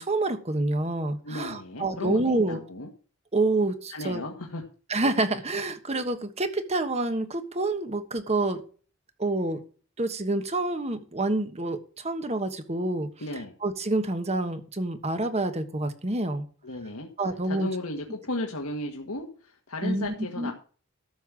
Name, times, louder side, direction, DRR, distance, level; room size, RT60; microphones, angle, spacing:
voice 1, 0.0-2.6 3.3-4.2 4.9-8.6 9.2-9.6 10.0-13.1 13.6-16.5 17.2-17.7 19.8-20.5, right 2 dB, 30° right, 9 dB, 1.3 m, -27 dB
voice 2, 1.2-2.9 3.9-4.6 13.2-13.5 16.6-17.1 17.4-20.5, left 2 dB, 85° left, 2 dB, 1.7 m, -34 dB
13.0 x 5.4 x 7.6 m, 0.40 s
head